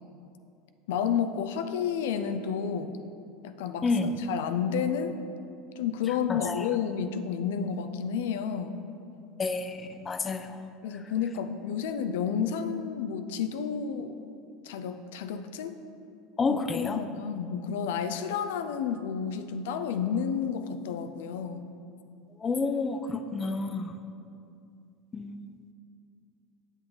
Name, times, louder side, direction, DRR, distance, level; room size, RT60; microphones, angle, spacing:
voice 1, 0.9-3.0 3.4-5.2 5.8-8.8 10.8-14.2 14.6-15.8 16.5-21.6, left 7 dB, 75° left, 10 dB, 0.5 m, -31 dB
voice 2, 3.8-4.2 6.3-6.7 9.4-10.7 16.4-17.0 22.4-24.1 25.1-25.5, left 3 dB, 25° left, 9 dB, 0.5 m, -30 dB
8.0 x 7.8 x 3.8 m, 2.5 s
hypercardioid pair, 90°, 0 cm